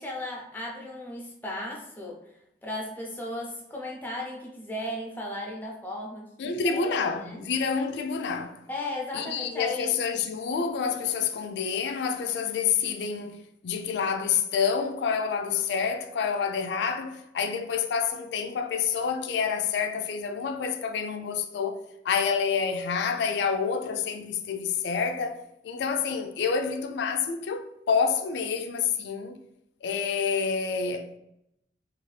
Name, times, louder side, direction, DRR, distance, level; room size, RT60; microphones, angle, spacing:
voice 1, 0.0-2.2 2.6-7.4 8.7-10.0, left 1 dB, 10° left, 0.5 m, -36 dB
voice 2, 6.4-8.6 9.1-25.4 25.6-29.4 29.8-31.2, left 6 dB, 75° left, 0.3 m, -28 dB
2.7 x 2.4 x 3.2 m
head